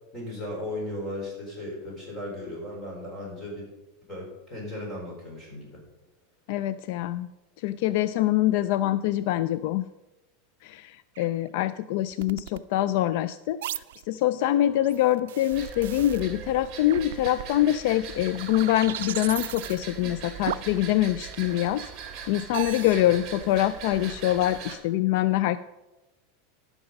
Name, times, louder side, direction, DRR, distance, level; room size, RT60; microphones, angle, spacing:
voice 1, 0.1-3.7 4.1-5.7 22.9-23.1, left 1 dB, 15° left, -3 dB, 4.0 m, -36 dB
voice 2, 6.5-7.3 7.6-9.9 10.6-21.9 22.3-25.6, left 14 dB, 55° left, 15 dB, 0.3 m, -25 dB
sound 1, 11.2-11.3 12.1-12.6 13.6-14.0 14.8-16.2 16.9-17.6 18.1-19.8 20.5-20.8 21.3-21.7 22.5-23.0, right 13 dB, 85° right, 0.3 m, -36 dB
sound 2, 14.4-21.3, right 5 dB, 10° right, 2.9 m, -49 dB
sound 3, 15.5-24.8, right 6 dB, 30° right, 2.0 m, -40 dB
13.0 x 6.0 x 5.3 m, 1.0 s
supercardioid pair, 160°, 0 cm